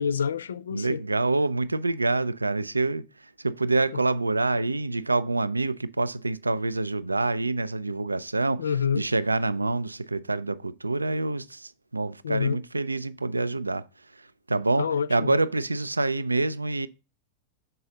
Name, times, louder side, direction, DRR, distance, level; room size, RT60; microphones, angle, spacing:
voice 1, 0.0-1.0 3.9-4.0 8.6-9.0 12.2-12.6 14.8-15.3, left 7 dB, 70° left, 0.4 m, -27 dB
voice 2, 0.7-3.0 3.4-8.6 8.9-13.8 14.5-16.9, right 2 dB, 80° right, 0.3 m, -26 dB
6.6 x 4.7 x 3.8 m
figure-of-eight pair, 90°, 0 cm